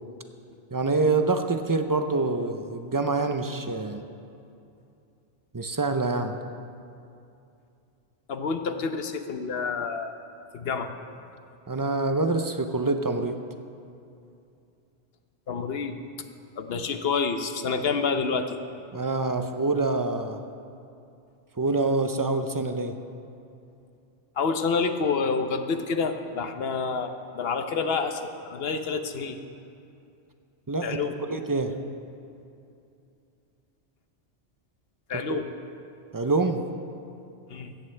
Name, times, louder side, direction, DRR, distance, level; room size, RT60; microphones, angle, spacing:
voice 1, 0.7-4.0 5.5-6.4 11.7-13.4 18.9-20.4 21.6-23.0 30.7-31.0 31.3-31.7 35.1-35.4 36.1-36.6, right 3 dB, 25° right, 7 dB, 0.4 m, -26 dB
voice 2, 8.3-10.2 10.5-10.9 15.5-15.9 16.6-18.6 24.4-28.2 28.5-29.4 30.8-31.1 35.1-35.4 37.5-37.7, left 5 dB, 60° left, 7 dB, 1.0 m, -28 dB
16.5 x 14.0 x 3.3 m, 2.6 s
omnidirectional pair, 1.2 m